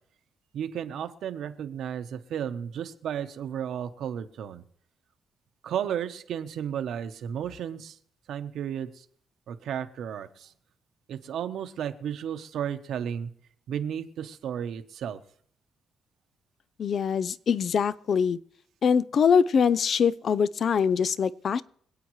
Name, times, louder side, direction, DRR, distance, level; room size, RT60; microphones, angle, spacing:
voice 1, 0.5-4.6 5.6-7.9 8.3-8.9 9.5-10.3 11.1-13.3 13.7-15.2, right 9 dB, 75° right, 1.0 m, -33 dB
voice 2, 16.8-18.4 18.8-21.6, left 6 dB, 55° left, 0.5 m, -23 dB
25.5 x 8.6 x 3.2 m
cardioid pair, 90°, 0 cm